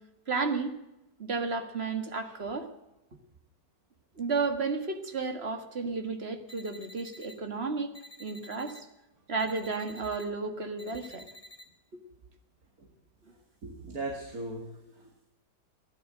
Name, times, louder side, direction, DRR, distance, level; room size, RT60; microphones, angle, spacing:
voice 1, 0.3-0.7 1.2-2.7 4.2-7.9 8.2-8.8 9.3-11.3, right 4 dB, 35° right, 6 dB, 1.9 m, -32 dB
sound 1, 6.5-7.3 7.9-8.8 9.4-10.2 10.8-11.6, equal, 15° left, 2.5 m, -50 dB
voice 2, 13.6-15.3, right 2 dB, 55° right, 1 dB, 2.7 m, -39 dB
16.0 x 11.0 x 7.5 m, 0.96 s
omnidirectional pair, 1.9 m